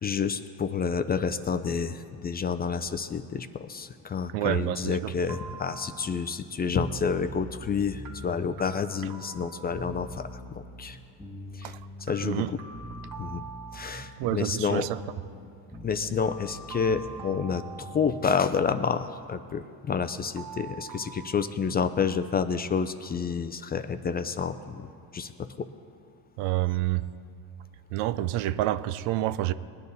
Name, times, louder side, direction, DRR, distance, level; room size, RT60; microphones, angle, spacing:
voice 1, 0.0-11.0 11.5-11.7 12.0-12.6 13.2-13.4 13.7-14.9 15.8-24.9 25.1-25.3 25.6-25.7, left 6 dB, 20° left, 0.4 m, -29 dB
voice 2, 4.3-5.1 11.6-11.8 12.2-12.5 14.2-15.0 26.4-27.0 27.9-29.5, right 15 dB, 80° right, 0.6 m, -28 dB
sound 1, 5.3-6.4 8.1-10.4 12.1-14.4 16.2-18.5 20.4-21.4, right 5 dB, 50° right, 1.6 m, -45 dB
sound 2, 6.7-18.6, equal, ahead, 2.0 m, -43 dB
20.0 x 9.3 x 4.1 m
supercardioid pair, 100°, 46 cm